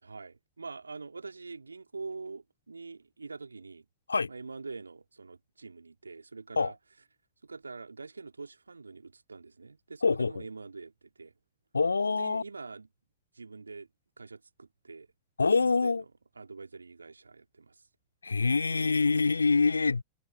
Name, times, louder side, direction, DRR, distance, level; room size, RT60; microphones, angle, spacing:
voice 1, 0.0-3.8 4.3-6.8 7.4-11.3 12.1-12.9 13.3-13.9 14.2-15.1 15.6-16.1 16.4-17.8, right 4 dB, 80° right, 2.3 m, -44 dB
voice 2, 10.0-10.4 11.7-12.4 15.4-16.0 18.2-20.0, left 4 dB, 75° left, 2.4 m, -25 dB
figure-of-eight pair, 90°, 0 cm